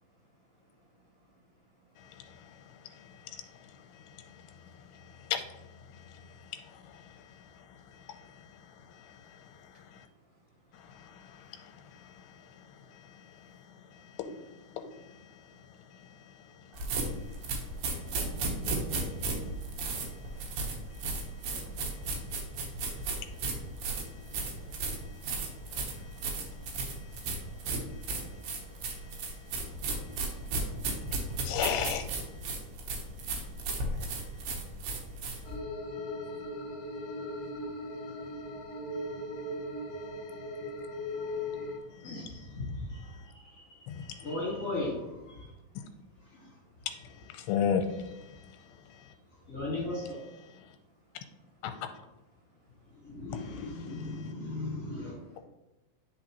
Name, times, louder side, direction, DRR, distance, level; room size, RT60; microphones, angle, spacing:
voice 1, 0.0-5.3 5.8-14.2 15.3-31.5 32.4-42.1 42.6-44.2 45.4-46.9 47.4-47.5 48.3-49.6 50.6-51.4 52.9-53.2, right 1 dB, 40° right, 2.6 m, -67 dB
sound 1, 16.7-35.6, right 3 dB, 75° right, 2.9 m, -34 dB
voice 2, 31.4-32.1 43.9-44.0 45.8-45.9 47.3-47.8, left 8 dB, 90° left, 2.6 m, -29 dB
sound 2, 35.4-41.8, left 1 dB, 70° left, 1.6 m, -38 dB
voice 3, 41.8-45.5 46.2-46.5 49.5-50.2 52.9-55.4, left 2 dB, 35° left, 1.6 m, -38 dB
10.5 x 4.1 x 2.9 m
omnidirectional pair, 4.5 m